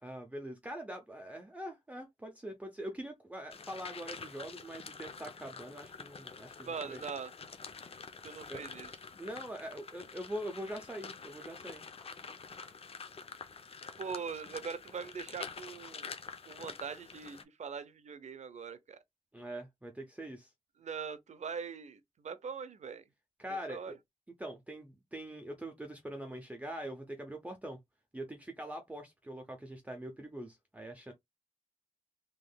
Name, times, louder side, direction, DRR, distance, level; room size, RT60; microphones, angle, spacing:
voice 1, 0.0-7.0 8.5-8.6 9.2-11.8 19.3-20.5 23.4-24.0 24.4-27.8 28.1-31.1, right 1 dB, 10° right, 0.6 m, -43 dB
sound 1, 3.5-17.4, left 5 dB, 50° left, 0.6 m, -47 dB
voice 2, 6.6-7.3 8.2-9.0 14.0-16.1 16.5-19.0 20.8-23.0 23.5-24.0, right 6 dB, 65° right, 0.6 m, -42 dB
3.5 x 3.0 x 2.3 m
wide cardioid pair, 155°, 13 cm